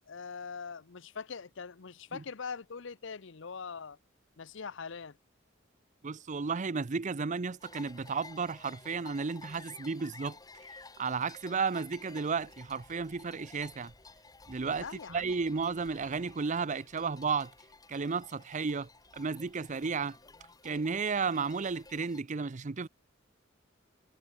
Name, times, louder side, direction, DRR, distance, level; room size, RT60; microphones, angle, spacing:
voice 1, 0.1-4.0 4.4-5.2 14.8-15.4, left 5 dB, 65° left, 0.7 m, -42 dB
voice 2, 6.0-10.4 11.0-13.9 14.5-17.5 17.9-20.2 20.6-22.9, right 5 dB, 40° right, 0.6 m, -33 dB
sound 1, 7.6-22.2, left 3 dB, 20° left, 1.8 m, -54 dB
head